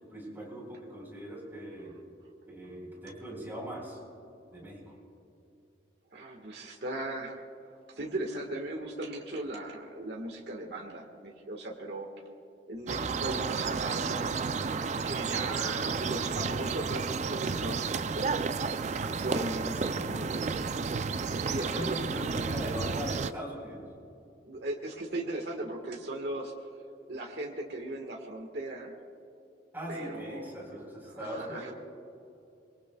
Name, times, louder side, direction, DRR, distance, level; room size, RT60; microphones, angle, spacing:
voice 1, 0.1-1.9 2.5-4.0 4.5-5.0 19.8-20.2 21.6-23.8 29.7-31.6, equal, 10° right, -2 dB, 4.1 m, -40 dB
voice 2, 6.1-12.1 12.7-14.4 15.0-18.5 19.0-20.6 21.1-22.5 24.5-26.5 27.1-29.0 29.9-30.5 31.1-31.7, right 1 dB, 65° right, 0 dB, 1.6 m, -38 dB
sound 1, 12.9-23.3, right 5 dB, 40° right, 0.4 m, -32 dB
25.5 x 22.5 x 2.3 m, 2.7 s
head